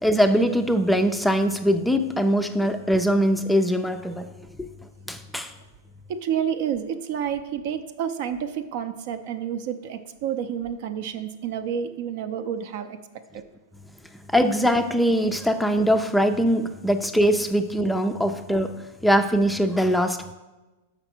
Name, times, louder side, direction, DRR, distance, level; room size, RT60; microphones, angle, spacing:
voice 1, 0.0-4.3 4.6-4.7 5.1-5.5 14.3-18.7 19.0-20.3, equal, 5° left, 7 dB, 0.4 m, -22 dB
voice 2, 6.1-13.0 13.3-13.4, right 8 dB, 60° right, 9 dB, 0.6 m, -29 dB
6.8 x 5.0 x 4.5 m, 1.1 s
hypercardioid pair, 115°, 0 cm